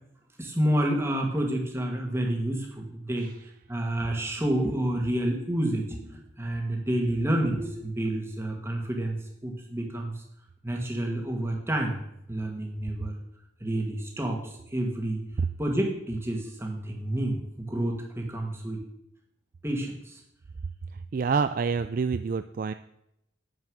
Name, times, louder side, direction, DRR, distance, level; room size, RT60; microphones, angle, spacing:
voice 1, 0.4-9.2 9.4-10.2 10.6-12.0 12.3-13.2 13.6-15.2 15.6-18.8 19.6-20.2, right 1 dB, 15° right, 1 dB, 1.9 m, -29 dB
voice 2, 21.1-22.7, right 5 dB, 45° right, 11 dB, 0.3 m, -27 dB
9.5 x 7.4 x 6.4 m, 0.77 s
head